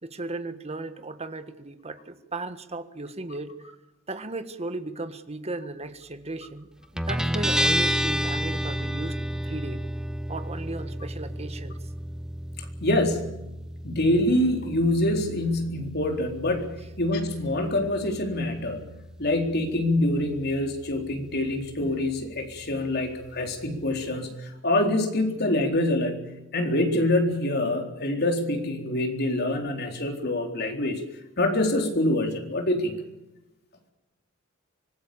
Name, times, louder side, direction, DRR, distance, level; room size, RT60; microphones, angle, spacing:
voice 1, 0.0-3.5 4.1-6.7 6.9-9.8 10.3-11.8, right 2 dB, 30° right, 10 dB, 1.5 m, -36 dB
Guitar, 7.0-24.2, equal, 5° right, 0.9 m, -32 dB
voice 2, 12.8-13.3 13.8-18.8 19.2-26.2 26.5-31.0 31.4-32.9, left 1 dB, 55° left, 4 dB, 3.9 m, -25 dB
25.5 x 19.5 x 7.0 m, 0.97 s
head